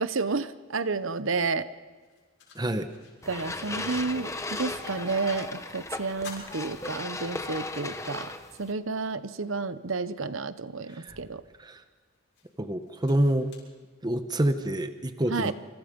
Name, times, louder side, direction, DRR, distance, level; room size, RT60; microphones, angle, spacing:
voice 1, 0.0-1.7 3.3-8.3 8.6-11.4 15.3-15.5, right 4 dB, 70° right, 14 dB, 1.0 m, -31 dB
sound 1, 1.9-5.3 5.6-5.7 6.1-7.6 8.1-8.2 9.6-9.7 10.3-14.5, left 4 dB, 60° left, 6.9 m, -52 dB
voice 2, 2.5-2.9 11.0-11.1 11.6-11.8 12.6-13.5 14.0-15.5, right 1 dB, 20° right, 9 dB, 1.0 m, -27 dB
sound 2, 3.2-8.7, left 2 dB, 15° left, 1.2 m, -36 dB
27.0 x 25.5 x 5.3 m, 1.4 s
head